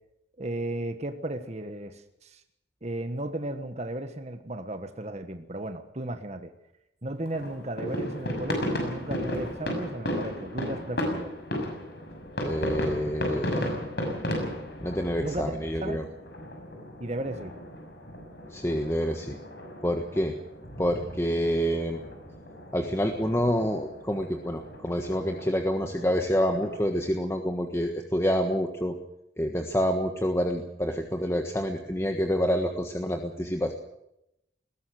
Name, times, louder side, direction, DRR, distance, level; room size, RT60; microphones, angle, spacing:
voice 1, 0.4-2.4 2.8-6.5 7.0-11.3 13.1-13.7 15.2-16.1 17.0-17.5, right 1 dB, 40° right, 7 dB, 1.4 m, -35 dB
sound 1, 7.3-27.0, equal, 65° left, 6.2 m, -35 dB
voice 2, 12.4-13.6 14.8-16.0 18.5-19.4 19.8-20.3 20.8-22.0 22.7-28.9 29.4-33.7, equal, 15° left, 4 dB, 1.5 m, -27 dB
20.5 x 17.0 x 7.7 m, 0.83 s
head